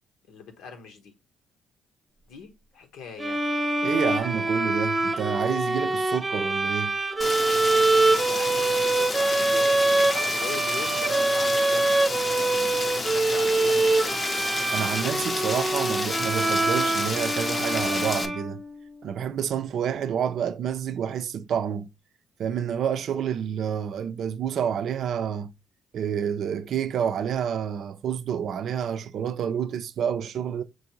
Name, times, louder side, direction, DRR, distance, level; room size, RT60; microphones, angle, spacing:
voice 1, 0.3-1.1 2.3-3.4 8.0-12.0 12.3-14.5, left 6 dB, 90° left, 0.9 m, -41 dB
sound 1, 3.2-18.9, right 2 dB, 20° right, 0.7 m, -24 dB
voice 2, 3.8-6.9 14.7-18.6 19.0-21.9 22.4-25.5 25.9-30.6, right 8 dB, 70° right, 0.4 m, -29 dB
Rain, 7.2-18.3, left 3 dB, 35° left, 0.6 m, -31 dB
6.0 x 2.6 x 2.9 m
cardioid pair, 90°, 0 cm